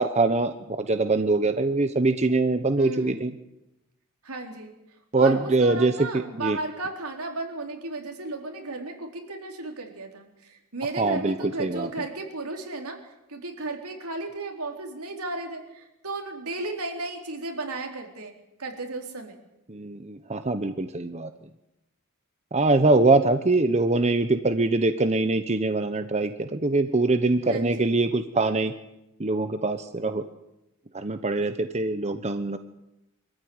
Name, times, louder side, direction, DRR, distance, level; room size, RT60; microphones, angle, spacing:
voice 1, 0.0-3.3 5.1-6.6 11.0-11.9 19.7-21.3 22.5-28.7 29.2-30.2 30.9-32.6, right 3 dB, 30° right, 9 dB, 0.9 m, -23 dB
voice 2, 2.8-3.2 4.2-4.7 5.1-13.0 13.3-18.3 18.6-19.4 27.5-27.9, right 2 dB, 85° right, 3 dB, 4.2 m, -34 dB
24.5 x 14.0 x 9.7 m, 0.92 s
head